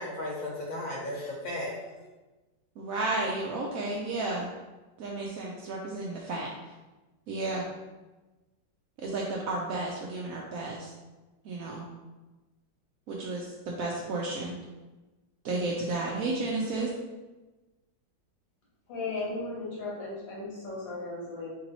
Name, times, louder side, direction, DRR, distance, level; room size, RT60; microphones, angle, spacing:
voice 1, 0.0-2.0, left 1 dB, 60° left, -4 dB, 1.4 m, -35 dB
voice 2, 2.8-4.5 5.0-6.5 7.3-7.7 9.0-10.9 11.4-11.8 13.1-14.5 15.4-16.9, right 2 dB, 80° right, -2 dB, 0.7 m, -32 dB
voice 3, 18.9-21.5, left 3 dB, 75° left, -6 dB, 2.2 m, -36 dB
3.9 x 2.9 x 3.9 m, 1.1 s
omnidirectional pair, 2.0 m